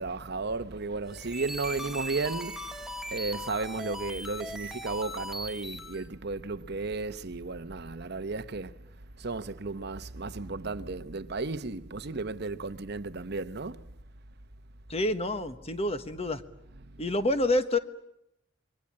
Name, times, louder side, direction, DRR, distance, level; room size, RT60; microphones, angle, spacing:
voice 1, 0.0-8.8 9.2-13.9 16.7-17.0, right 3 dB, 55° right, 0.9 m, -34 dB
sound 1, 1.0-6.1, equal, ahead, 1.3 m, -39 dB
voice 2, 14.9-16.4 17.0-17.8, left 1 dB, 30° left, 1.3 m, -28 dB
27.5 x 22.5 x 8.7 m
head